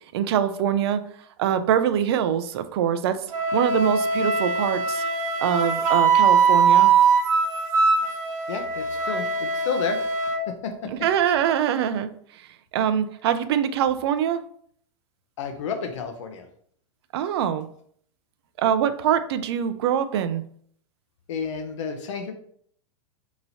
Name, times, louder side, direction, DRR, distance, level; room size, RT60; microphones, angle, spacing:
voice 1, 0.1-1.0 1.4-3.3 3.5-5.0 5.4-6.9 10.9-14.4 17.1-17.7 18.6-20.4, right 9 dB, 50° right, 11 dB, 0.4 m, -24 dB
Wind instrument woodwind instrument, 3.3-10.4, right 5 dB, 75° right, 0.9 m, -21 dB
voice 2, 8.5-10.0 10.5-10.7 15.4-16.5 21.3-22.3, left 6 dB, 60° left, 6 dB, 0.6 m, -31 dB
5.5 x 2.9 x 2.7 m, 0.62 s
supercardioid pair, 175°, 18 cm